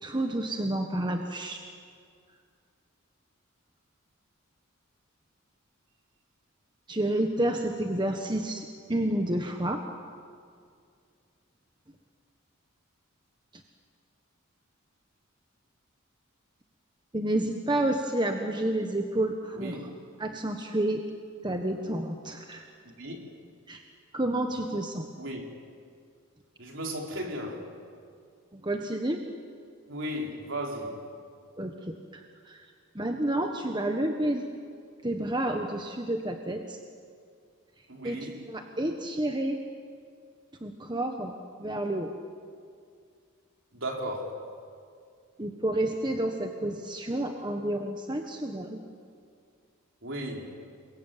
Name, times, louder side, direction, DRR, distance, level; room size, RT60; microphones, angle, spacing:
voice 1, 0.0-1.6 6.9-9.8 17.1-19.8 20.2-21.0 21.4-22.7 23.7-23.8 24.1-25.1 28.5-29.2 31.6-32.6 32.9-34.4 35.0-36.8 38.0-38.2 38.5-39.6 40.6-41.3 41.6-42.1 45.4-48.8, right 1 dB, 20° right, 1.3 m, -30 dB
voice 2, 19.6-20.0 23.0-23.2 25.2-25.4 26.6-27.8 29.9-31.1 37.9-38.5 43.7-44.5 50.0-50.6, equal, 60° right, 4.1 m, -36 dB
29.5 x 22.0 x 9.2 m
head